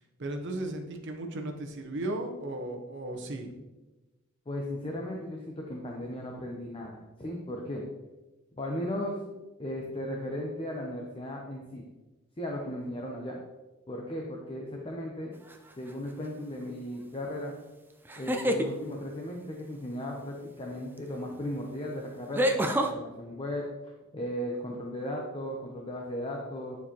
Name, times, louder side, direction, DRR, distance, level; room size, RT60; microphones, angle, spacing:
voice 1, 0.2-3.5, right 1 dB, 60° right, 4 dB, 0.9 m, -35 dB
voice 2, 4.5-7.8 8.6-9.2 9.6-11.8 12.4-13.4 13.9-15.3 15.8-17.5 18.2-23.7 24.1-26.8, left 1 dB, 25° left, 0 dB, 0.7 m, -36 dB
sound 1, 15.5-15.9 18.1-18.7 21.0-21.1 22.3-22.9, equal, 10° right, 0.4 m, -27 dB
9.6 x 4.4 x 2.9 m, 1.1 s
head